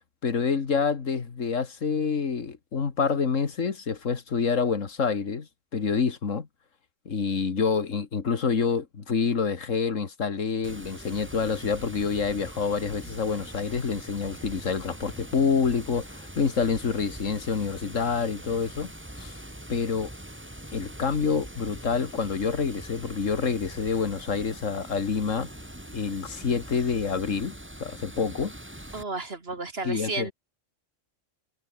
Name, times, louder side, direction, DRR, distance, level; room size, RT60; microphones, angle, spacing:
voice 1, 0.2-6.5 7.1-18.9 19.2-19.4 19.7-20.1 20.7-25.5 25.9-28.5 29.8-30.3, left 5 dB, 90° left, 2.2 m, -27 dB
Water, 10.6-29.0, right 1 dB, 10° right, 2.5 m, -43 dB
voice 2, 28.9-30.3, right 3 dB, 50° right, 2.7 m, -33 dB
omnidirectional pair, 1.3 m